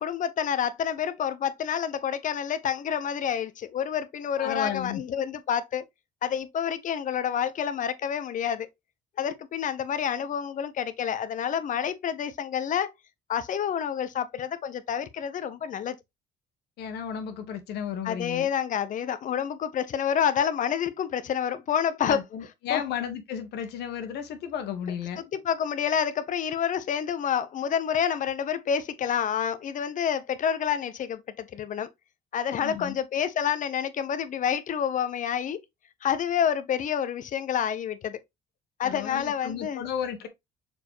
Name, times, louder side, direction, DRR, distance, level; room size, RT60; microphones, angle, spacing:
voice 1, 0.0-5.8 6.2-8.7 9.2-12.9 13.3-16.0 18.0-22.2 22.7-22.8 25.2-31.9 32.3-35.6 36.0-38.2 38.8-39.8, left 8 dB, 50° left, 0.9 m, -28 dB
voice 2, 4.4-5.0 16.8-18.5 22.1-25.2 32.6-32.9 38.8-40.3, left 8 dB, 75° left, 1.7 m, -33 dB
6.6 x 4.6 x 3.1 m
cardioid pair, 110°, 17 cm